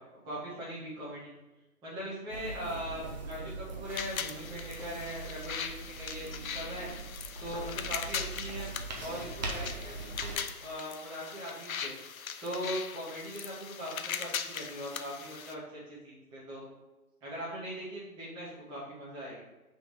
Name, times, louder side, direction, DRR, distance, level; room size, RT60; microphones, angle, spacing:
voice 1, 0.2-1.3 1.8-6.9 7.4-8.7 9.0-12.0 12.4-16.7 17.2-19.5, equal, 10° right, -8 dB, 1.5 m, -40 dB
sound 1, 2.3-10.4, right 3 dB, 30° right, 0.7 m, -41 dB
sound 2, 3.9-15.5, left 7 dB, 65° left, 0.7 m, -40 dB
6.4 x 3.7 x 5.0 m, 1.1 s
hypercardioid pair, 165°, 45 cm